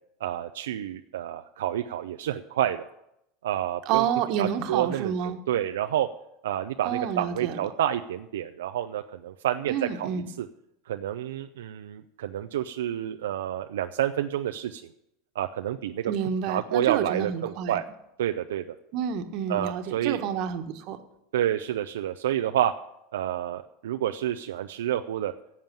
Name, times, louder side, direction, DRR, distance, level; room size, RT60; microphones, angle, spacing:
voice 1, 0.2-2.9 3.4-4.0 4.4-6.1 6.4-10.5 10.9-14.8 15.4-16.1 16.5-17.9 18.2-18.8 19.5-20.2 21.3-22.7 23.1-25.3, right 11 dB, 90° right, 7 dB, 0.5 m, -29 dB
voice 2, 3.8-5.4 6.8-7.6 9.7-10.3 16.1-17.8 18.9-21.0, right 8 dB, 55° right, 7 dB, 1.4 m, -29 dB
11.0 x 7.4 x 8.9 m, 0.82 s
supercardioid pair, 110°, 0 cm